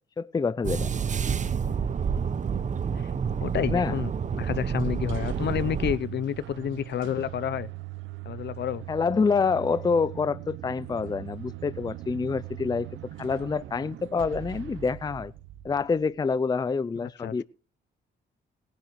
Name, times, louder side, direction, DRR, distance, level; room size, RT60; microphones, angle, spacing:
voice 1, 0.2-0.9 3.7-3.9 8.9-12.9 13.2-15.3 15.6-17.4, left 5 dB, 20° left, 0.5 m, -27 dB
sound 1, 0.6-6.0, right 6 dB, 40° right, 0.8 m, -28 dB
voice 2, 3.4-7.7 8.2-8.8 17.0-17.4, left 9 dB, 60° left, 0.8 m, -30 dB
sound 2, 4.8-16.4, right 14 dB, 80° right, 0.8 m, -41 dB
20.0 x 10.0 x 3.2 m
cardioid pair, 90°, 20 cm